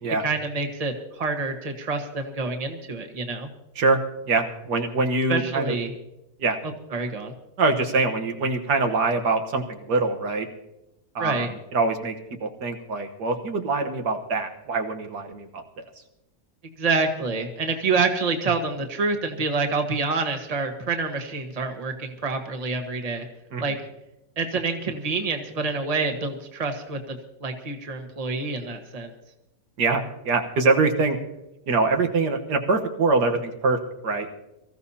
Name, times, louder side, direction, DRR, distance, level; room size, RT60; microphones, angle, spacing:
voice 1, 0.2-3.5 5.3-5.9 6.6-7.3 11.2-11.5 16.8-23.3 23.6-23.8 24.4-29.1, right 4 dB, 25° right, 4 dB, 1.3 m, -27 dB
voice 2, 4.3-5.7 6.4-6.6 7.6-10.5 11.2-12.1 12.4-15.6 23.5-23.6 29.8-31.2 31.7-33.8 34.0-34.3, right 3 dB, 75° right, 4 dB, 1.8 m, -24 dB
24.0 x 14.5 x 2.8 m, 0.90 s
omnidirectional pair, 1.8 m